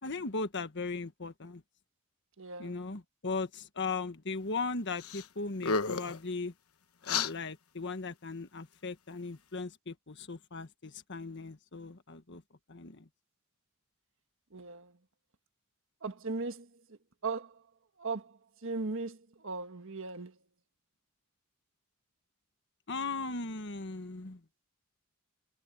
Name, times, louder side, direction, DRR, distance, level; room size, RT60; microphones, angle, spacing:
voice 1, 0.0-1.6 2.6-6.5 7.0-12.4 12.7-13.1 22.9-24.4, left 3 dB, 55° left, 1.4 m, -38 dB
voice 2, 2.4-2.8 14.5-15.0 16.0-17.6 18.0-20.4, right 3 dB, 65° right, 1.7 m, -38 dB
sound 1, 5.0-5.3 5.6-6.2 7.0-7.3, left 5 dB, 85° left, 1.1 m, -31 dB
head